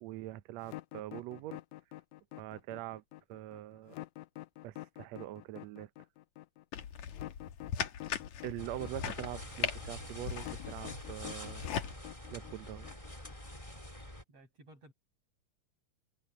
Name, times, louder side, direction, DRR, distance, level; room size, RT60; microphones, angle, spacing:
voice 1, 0.0-1.6 2.4-3.0 3.3-3.9 4.6-5.9 8.4-11.6 12.3-12.9, right 15 dB, 80° right, 1.6 m, -43 dB
sound 1, 0.6-13.5, left 17 dB, 90° left, 1.5 m, -47 dB
sound 2, 6.7-11.9, left 8 dB, 60° left, 2.6 m, -39 dB
sound 3, 8.6-14.2, left 1 dB, 10° left, 3.9 m, -47 dB
voice 2, 14.3-14.9, right 1 dB, 45° right, 7.6 m, -57 dB
omnidirectional pair, 4.0 m